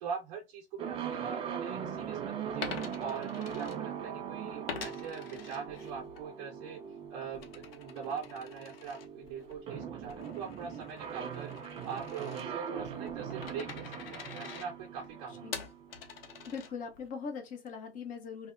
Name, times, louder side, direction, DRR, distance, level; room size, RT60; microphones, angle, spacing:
voice 1, 0.0-2.7 3.0-6.8 7.1-11.5 11.8-15.5, right 6 dB, 45° right, 0.7 m, -42 dB
sound 1, 0.8-16.6, right 8 dB, 20° right, 0.4 m, -41 dB
Coin (dropping), 2.5-4.2 4.7-6.3 6.6-17.1, left 7 dB, 70° left, 0.7 m, -46 dB
voice 2, 16.5-18.5, left 5 dB, 25° left, 0.8 m, -41 dB
2.8 x 2.0 x 2.5 m
hypercardioid pair, 105°, 31 cm